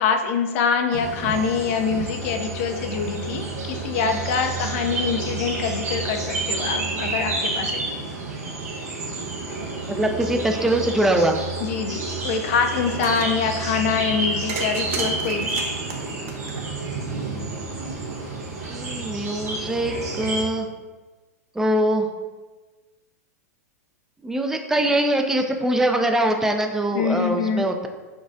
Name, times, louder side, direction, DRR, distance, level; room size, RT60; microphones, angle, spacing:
voice 1, 0.0-7.8 11.6-15.6 26.9-27.7, left 6 dB, 55° left, 5 dB, 0.5 m, -25 dB
sound 1, 0.9-20.4, right 3 dB, 85° right, 1.1 m, -29 dB
voice 2, 9.9-11.4 18.6-20.7 21.5-22.1 24.2-27.9, right 1 dB, 5° right, 5 dB, 0.3 m, -22 dB
sound 2, 12.8-13.4 14.5-17.0, right 5 dB, 55° right, 0.6 m, -33 dB
6.0 x 2.4 x 2.6 m, 1.3 s
hypercardioid pair, 115°, 8 cm